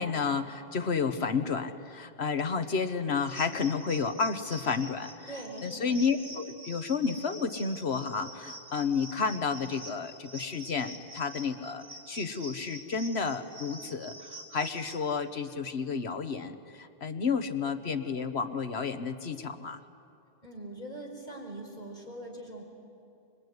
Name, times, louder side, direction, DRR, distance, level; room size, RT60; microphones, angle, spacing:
voice 1, 0.0-19.8, left 5 dB, 75° left, 9 dB, 1.5 m, -31 dB
sound 1, 3.3-15.0, right 1 dB, 55° right, 3.4 m, -46 dB
voice 2, 5.3-6.0 20.4-22.6, right 1 dB, 45° left, 0 dB, 5.1 m, -42 dB
25.5 x 23.0 x 9.6 m, 2.6 s
omnidirectional pair, 1.1 m